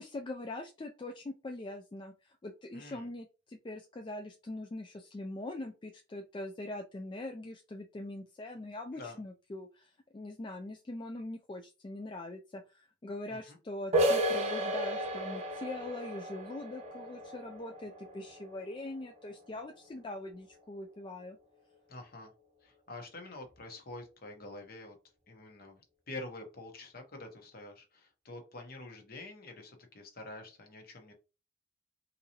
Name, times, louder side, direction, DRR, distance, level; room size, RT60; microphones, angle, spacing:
voice 1, 0.0-21.4, left 2 dB, 25° left, 4 dB, 0.3 m, -42 dB
voice 2, 2.7-3.1 8.9-9.2 13.3-13.6 21.9-22.3 22.6-24.9 25.3-25.8 26.1-31.1, left 2 dB, 50° left, 4 dB, 1.0 m, -47 dB
sound 1, 13.9-19.4, right 1 dB, 35° right, 0.7 m, -33 dB
3.9 x 2.8 x 2.8 m, 0.30 s
head